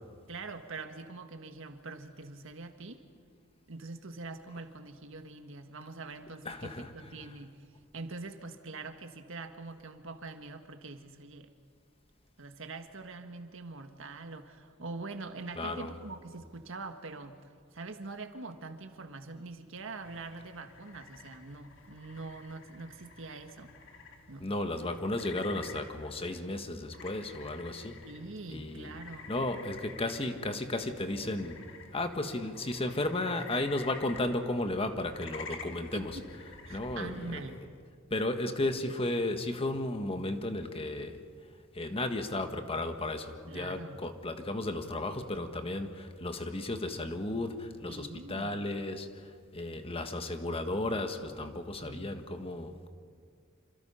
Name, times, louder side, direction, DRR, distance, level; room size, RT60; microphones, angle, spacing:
voice 1, 0.3-3.0 3.7-7.7 7.9-11.5 12.4-17.4 17.7-23.7 24.3-24.5 28.1-29.3 35.5-35.6 35.9-36.3 36.6-37.6 43.5-44.0 47.9-48.7 51.8-52.3, right 3 dB, 70° right, 7 dB, 1.7 m, -44 dB
voice 2, 6.4-6.9 15.6-15.9 24.4-28.0 28.5-28.9 29.3-31.6 31.9-36.2 36.7-37.4 38.1-41.2 41.7-52.9, left 2 dB, 30° left, 7 dB, 1.5 m, -34 dB
sound 1, 20.0-37.6, left 5 dB, 70° left, 2.5 m, -50 dB
27.5 x 26.5 x 5.7 m, 2.1 s
head